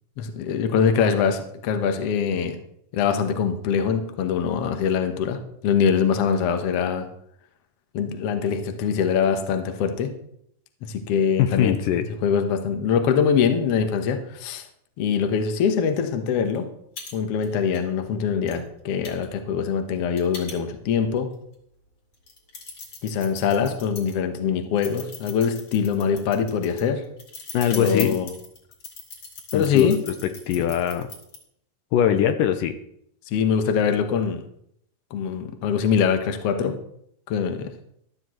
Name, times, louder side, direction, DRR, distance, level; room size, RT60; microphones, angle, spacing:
voice 1, 0.2-2.6 2.9-7.1 7.9-10.1 10.9-11.8 12.2-14.7 15.0-16.7 17.1-21.3 23.0-27.0 27.7-28.3 29.5-30.0 33.3-34.4 35.1-36.7 37.3-37.7, left 7 dB, 60° left, 7 dB, 1.6 m, -23 dB
voice 2, 11.4-12.1 27.5-28.2 29.5-31.1 31.9-32.8, left 9 dB, 80° left, 8 dB, 2.2 m, -22 dB
sound 1, 16.5-16.6 17.0-17.1 17.4-17.8 18.5-18.6 19.0-21.0 21.5-21.6 22.1-24.1 24.8-31.4, left 4 dB, 40° left, 2.8 m, -39 dB
14.0 x 12.5 x 3.1 m, 0.72 s
omnidirectional pair, 4.0 m